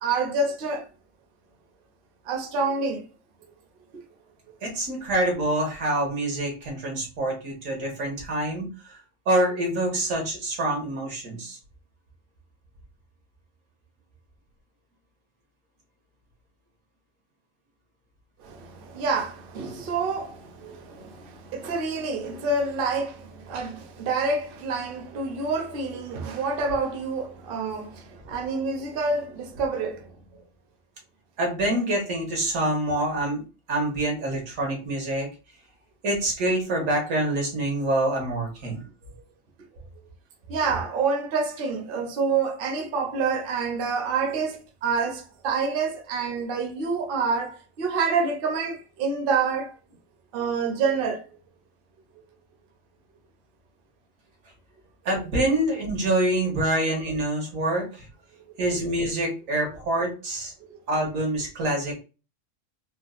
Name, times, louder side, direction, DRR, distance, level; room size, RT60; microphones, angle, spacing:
voice 1, 0.0-0.8 2.3-3.0 18.4-30.0 40.5-49.7 50.3-51.2, right 4 dB, 55° right, 0.7 m, -27 dB
voice 2, 4.6-9.0 9.2-11.6 31.4-33.4 33.7-35.3 36.0-38.9 55.0-58.1 58.6-60.5 60.9-62.0, right 1 dB, 85° right, 1.7 m, -26 dB
4.2 x 2.0 x 2.4 m
omnidirectional pair, 1.4 m